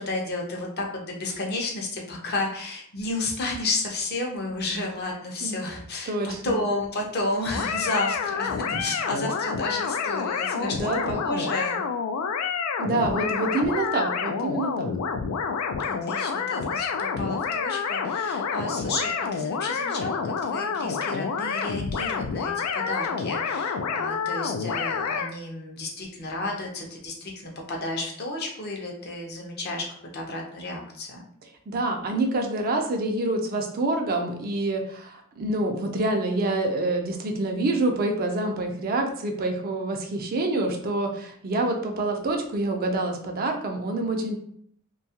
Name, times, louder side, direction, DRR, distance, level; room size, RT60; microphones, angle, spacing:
voice 1, 0.0-11.8 15.9-29.8 30.1-31.2, left 2 dB, 50° left, 0 dB, 0.6 m, -32 dB
voice 2, 6.1-6.6 10.5-11.2 12.8-14.9 31.7-44.4, right 2 dB, 45° right, 3 dB, 0.4 m, -27 dB
sound 1, 7.5-25.3, left 6 dB, 90° left, 0.3 m, -28 dB
2.7 x 2.3 x 2.8 m, 0.64 s
head